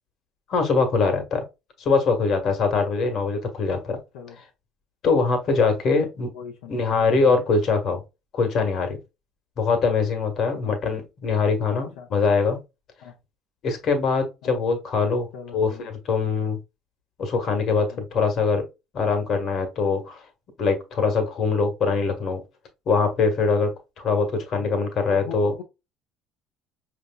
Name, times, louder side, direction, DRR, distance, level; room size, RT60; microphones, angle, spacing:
voice 1, 0.5-1.4 1.8-4.0 5.0-6.3 6.7-8.0 8.3-9.0 9.6-12.6 13.6-15.3 15.5-16.6 17.2-18.6 18.9-20.2 20.6-22.4 22.9-23.7 24.0-25.5, left 4 dB, 55° left, 1.4 m, -23 dB
voice 2, 6.3-7.4 10.6-10.8 11.7-12.1 13.0-13.1 14.4-14.6 15.3-15.9 17.9-18.0 24.5-24.8 25.1-25.6, left 7 dB, 80° left, 0.7 m, -41 dB
5.3 x 2.9 x 2.2 m
hypercardioid pair, 70°, 0 cm